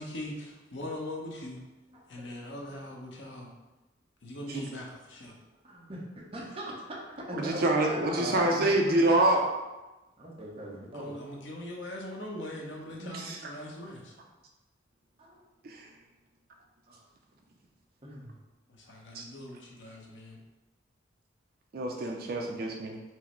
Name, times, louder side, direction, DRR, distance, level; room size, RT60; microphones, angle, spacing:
voice 1, 0.0-1.6 2.1-3.5 4.2-5.3 10.9-14.1 18.7-20.4, left 1 dB, 80° left, -1 dB, 0.9 m, -41 dB
voice 2, 1.9-2.3 5.3-5.4 5.6-6.7 7.3-9.0 10.2-11.2 15.2-15.4 16.9-17.1 18.0-18.4, equal, 30° right, -3 dB, 0.8 m, -40 dB
voice 3, 7.3-9.5 13.0-13.5 15.6-15.9 19.1-19.2 21.7-23.0, right 1 dB, 55° right, 1 dB, 0.4 m, -27 dB
4.6 x 2.0 x 4.4 m, 1.1 s
head